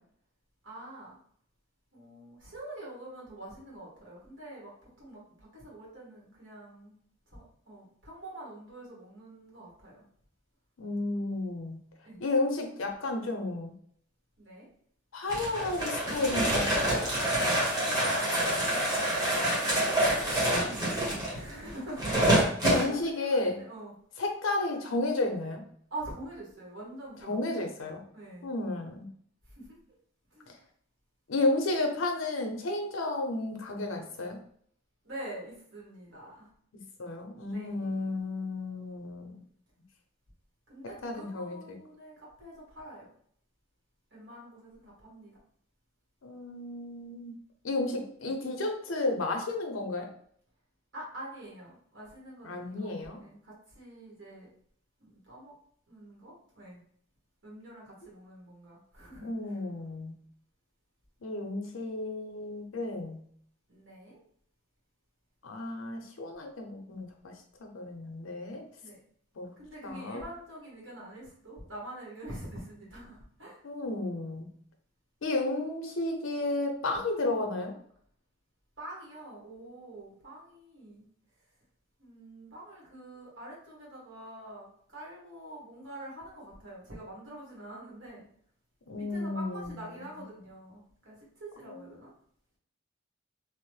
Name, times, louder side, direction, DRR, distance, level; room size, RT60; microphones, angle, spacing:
voice 1, 0.6-1.2 1.9-4.7 5.0-6.9 7.3-10.0 12.0-12.2 14.4-14.7 17.5-18.4 19.3-22.3 22.7-23.9 25.9-27.5 28.1-28.5 29.6-29.8 30.3-30.5 35.0-36.5 37.5-38.1 40.7-43.1 44.1-45.3 50.9-54.5 55.0-55.5 55.9-56.8 57.4-59.6 63.7-64.2 68.8-69.0 69.6-73.6 78.8-81.0 82.0-88.3 89.0-92.1, right 1 dB, 70° right, -4 dB, 1.3 m, -45 dB
voice 2, 10.8-11.8 12.2-13.7 15.1-16.8 22.6-23.6 24.2-25.6 27.2-28.0 28.4-29.1 31.3-34.4 37.0-39.4 41.0-41.8 46.2-47.4 47.6-50.1 52.4-53.2 59.2-60.1 61.2-63.2 65.4-67.1 67.6-68.6 69.4-69.5 69.8-70.2 73.6-74.5 75.2-77.7 88.9-89.8 91.7-91.8, left 2 dB, 90° left, 3 dB, 0.6 m, -32 dB
sound 1, 15.3-22.9, right 1 dB, 20° right, 1.0 m, -27 dB
2.9 x 2.0 x 3.1 m, 0.63 s
head